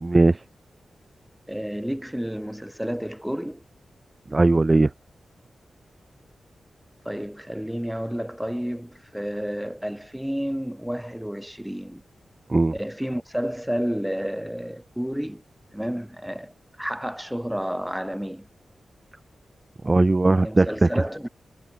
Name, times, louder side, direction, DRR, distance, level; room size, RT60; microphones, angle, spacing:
voice 1, 0.0-0.4 4.3-4.9 12.5-12.7 19.8-20.9, right 2 dB, 20° right, 1.3 m, -18 dB
voice 2, 1.5-3.6 7.0-12.0 12.7-15.4 15.7-16.5 16.8-18.5 20.4-21.3, equal, 5° right, 8.0 m, -30 dB
wide cardioid pair, 160°, 0 cm